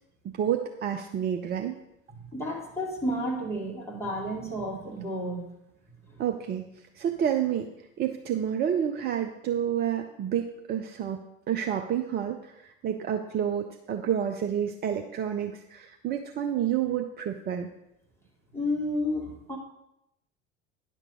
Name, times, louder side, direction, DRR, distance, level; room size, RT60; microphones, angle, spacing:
voice 1, 0.2-1.7 6.2-6.6 7.0-7.7 8.0-11.2 11.5-17.7, right 9 dB, 25° right, 5 dB, 0.6 m, -29 dB
voice 2, 2.3-5.5 6.1-6.2 18.5-19.6, left 1 dB, 5° left, -3 dB, 2.2 m, -31 dB
10.0 x 6.1 x 5.3 m, 0.83 s
figure-of-eight pair, 75°, 40 cm